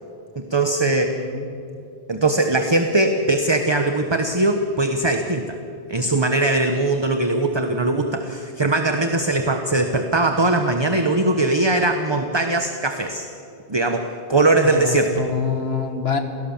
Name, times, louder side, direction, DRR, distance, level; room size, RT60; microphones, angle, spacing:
voice 1, 0.4-1.2 2.1-5.6 5.9-13.3 13.7-15.2, right 2 dB, 25° right, 5 dB, 1.2 m, -20 dB
voice 2, 1.1-1.5 14.6-16.2, left 6 dB, 70° left, 6 dB, 2.1 m, -26 dB
28.5 x 17.5 x 7.3 m, 2.7 s
omnidirectional pair, 1.1 m